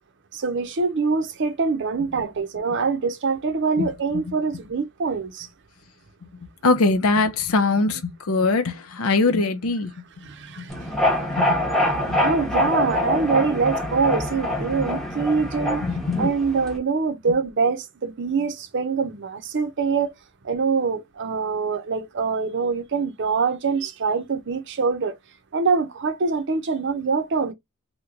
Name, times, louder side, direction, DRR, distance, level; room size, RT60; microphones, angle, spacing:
voice 1, 0.3-5.5 10.2-10.9 12.0-15.8 16.2-20.1 20.4-25.2 25.5-27.5, right 4 dB, 55° right, 0.6 m, -24 dB
voice 2, 3.8-4.2 6.2-10.3 10.6-10.7 11.3-12.2 15.8-16.2, left 3 dB, 80° left, 0.6 m, -23 dB
sound 1, 10.7-16.8, left 1 dB, ahead, 0.8 m, -25 dB
3.0 x 2.2 x 3.6 m
head